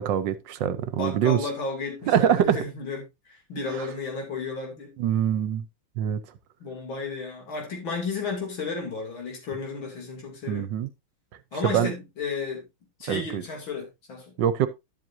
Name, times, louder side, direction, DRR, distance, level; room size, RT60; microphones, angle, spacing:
voice 1, 0.0-1.4 2.1-2.6 5.0-5.6 6.0-6.2 10.5-10.9 11.6-11.9 13.1-13.4 14.4-14.7, right 10 dB, 70° right, 1.4 m, -24 dB
voice 2, 0.8-4.9 6.6-10.7 11.5-12.6 13.0-14.3, left 4 dB, 80° left, 3.5 m, -33 dB
11.5 x 7.7 x 2.7 m
omnidirectional pair, 2.2 m